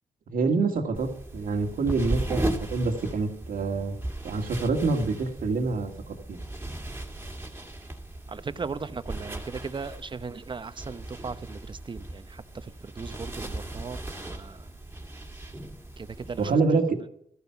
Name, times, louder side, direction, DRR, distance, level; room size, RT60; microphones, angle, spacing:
voice 1, 0.3-2.4 2.7-3.9 4.2-6.4 16.4-17.0, right 4 dB, 85° right, 1.9 m, -26 dB
sound 1, 0.9-16.5, right 1 dB, 15° right, 2.0 m, -37 dB
voice 2, 8.3-14.7 16.0-16.6, right 5 dB, 35° right, 0.9 m, -38 dB
14.5 x 12.0 x 5.8 m
cardioid pair, 100°, 14 cm